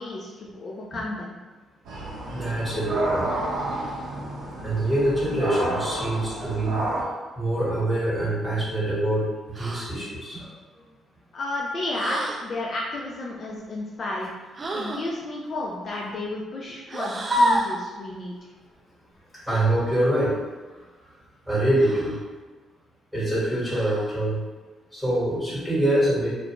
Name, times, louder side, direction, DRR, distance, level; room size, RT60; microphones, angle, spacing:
voice 1, 0.0-1.4 11.3-14.3 14.7-18.4, left 2 dB, 50° left, -3 dB, 0.4 m, -32 dB
sound 1, 1.8-7.0, right 1 dB, 80° right, 0.7 m, -30 dB
voice 2, 2.3-3.3 4.6-6.8 7.4-10.5 19.5-20.3 21.5-22.2 23.1-24.4 24.9-26.3, right 1 dB, ahead, -9 dB, 1.3 m, -24 dB
sound 2, 9.5-9.9 11.9-12.5 14.5-15.1 16.9-17.8 19.5-19.7 21.8-22.3 23.7-24.2, equal, 35° right, 0.3 m, -27 dB
2.4 x 2.1 x 2.9 m, 1.3 s
cardioid pair, 90°, 0 cm